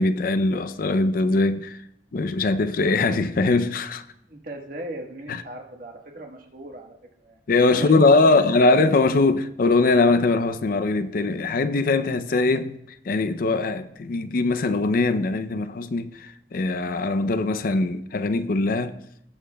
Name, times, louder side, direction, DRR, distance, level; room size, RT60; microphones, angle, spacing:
voice 1, 0.0-1.8 2.1-4.0 5.3-5.4 7.5-12.8 13.0-18.9, left 3 dB, 50° left, 0.5 m, -21 dB
voice 2, 4.3-7.4 7.7-8.7, right 1 dB, 50° right, 1.3 m, -37 dB
19.0 x 7.3 x 2.2 m
head